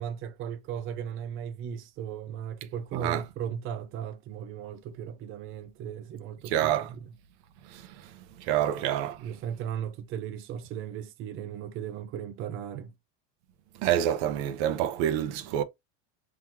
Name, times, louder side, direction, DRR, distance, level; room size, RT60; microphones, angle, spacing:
voice 1, 0.0-7.0 8.6-8.7 9.2-12.9, right 9 dB, 35° right, 0.5 m, -37 dB
voice 2, 6.5-6.9 7.7-7.8 8.4-9.2 13.8-15.6, right 11 dB, 70° right, 0.8 m, -27 dB
3.9 x 3.0 x 2.9 m
supercardioid pair, 140°, 35 cm